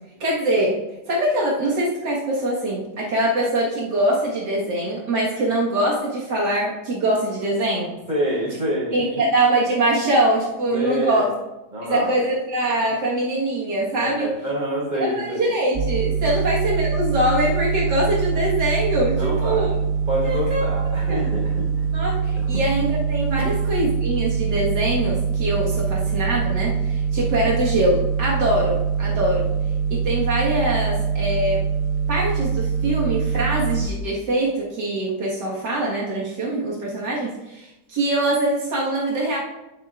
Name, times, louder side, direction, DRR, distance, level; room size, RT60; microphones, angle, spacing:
voice 1, 0.2-0.8 1.1-7.9 8.9-11.3 11.8-14.3 14.9-19.7 20.2-20.6 21.1-21.3 21.9-29.5 29.9-31.6 32.1-39.4, right 1 dB, 85° right, -5 dB, 2.3 m, -23 dB
voice 2, 8.1-9.2 10.7-11.3 11.7-12.2 13.9-15.5 16.3-16.4 19.1-21.9, equal, 30° right, -5 dB, 4.0 m, -27 dB
sound 1, 15.7-33.9, right 6 dB, 45° right, 0.9 m, -24 dB
16.0 x 7.7 x 2.5 m, 0.99 s
omnidirectional pair, 1.8 m